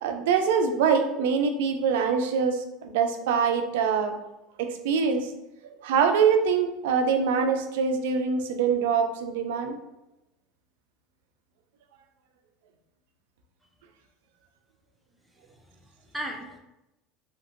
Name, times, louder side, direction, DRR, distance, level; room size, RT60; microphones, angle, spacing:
voice 1, 0.0-4.1 4.6-5.3 5.6-9.8, right 6 dB, 85° right, 7 dB, 0.3 m, -24 dB
voice 2, 15.4-16.6, equal, 5° right, 2 dB, 0.4 m, -38 dB
2.8 x 2.6 x 2.5 m, 0.92 s
supercardioid pair, 140°, 0 cm